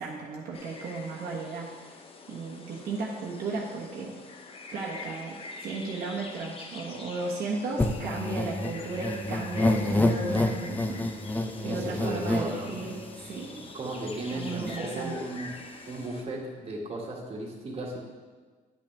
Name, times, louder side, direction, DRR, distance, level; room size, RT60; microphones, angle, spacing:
voice 1, 0.0-1.9 2.3-4.2 4.7-11.1 11.6-12.9 13.2-13.7 14.3-15.1, right 3 dB, 60° right, -5 dB, 1.3 m, -35 dB
sound 1, 0.5-16.2, left 3 dB, 35° left, 0.8 m, -45 dB
sound 2, 7.8-13.3 13.9-14.0 14.2-14.8, left 2 dB, 10° left, 0.5 m, -29 dB
voice 2, 11.6-12.8 13.7-15.6 15.9-18.0, right 2 dB, 35° right, -2 dB, 1.8 m, -35 dB
9.9 x 5.9 x 3.5 m, 1.4 s
cardioid pair, 110°, 17 cm